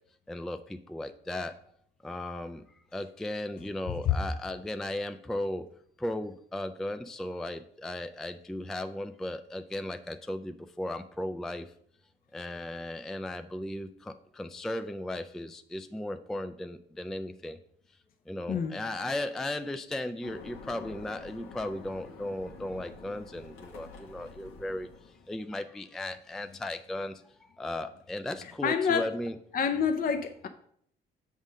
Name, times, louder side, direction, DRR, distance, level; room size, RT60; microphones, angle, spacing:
voice 1, 0.3-1.6 2.0-2.6 2.9-5.7 6.0-11.7 12.3-17.6 18.3-24.9 25.3-29.4, left 1 dB, ahead, 9 dB, 0.3 m, -36 dB
sound 1, 20.2-25.4, left 4 dB, 85° left, 1.4 m, -48 dB
voice 2, 28.4-29.1 29.5-30.5, left 7 dB, 45° left, 6 dB, 0.6 m, -28 dB
7.1 x 3.6 x 6.4 m, 0.66 s
cardioid pair, 90°, 20 cm